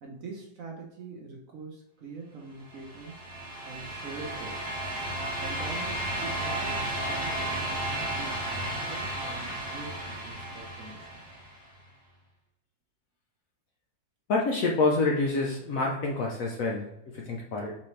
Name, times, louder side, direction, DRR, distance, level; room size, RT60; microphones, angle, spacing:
voice 1, 0.0-3.2 3.7-4.7 5.4-11.3, right 4 dB, 60° right, 0 dB, 1.0 m, -44 dB
sound 1, 2.7-11.6, right 1 dB, 10° right, 1.2 m, -33 dB
voice 2, 14.3-17.8, left 3 dB, 65° left, -1 dB, 0.8 m, -27 dB
4.1 x 3.8 x 3.1 m, 0.86 s
omnidirectional pair, 2.0 m